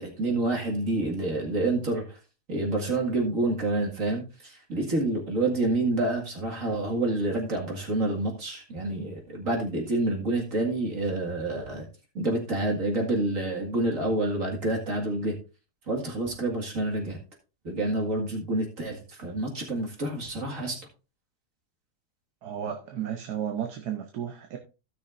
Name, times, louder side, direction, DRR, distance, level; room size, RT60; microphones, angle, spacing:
voice 1, 0.0-2.2 2.5-11.9 12.1-15.4 15.9-17.2 17.6-20.8, right 2 dB, 55° right, 0 dB, 2.4 m, -28 dB
voice 2, 22.4-24.6, right 9 dB, 90° right, 4 dB, 1.5 m, -33 dB
16.5 x 6.4 x 2.5 m, 0.31 s
omnidirectional pair, 1.7 m